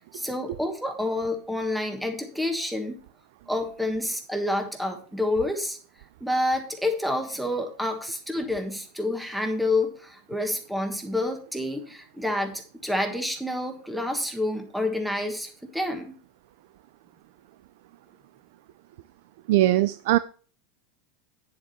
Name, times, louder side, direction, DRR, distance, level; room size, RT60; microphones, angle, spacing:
voice 1, 0.1-3.0 3.5-5.8 6.2-16.2, left 1 dB, ahead, 5 dB, 1.4 m, -28 dB
voice 2, 19.5-20.2, right 15 dB, 65° right, 14 dB, 0.4 m, -20 dB
9.8 x 7.3 x 4.2 m, 0.42 s
supercardioid pair, 165°, 0 cm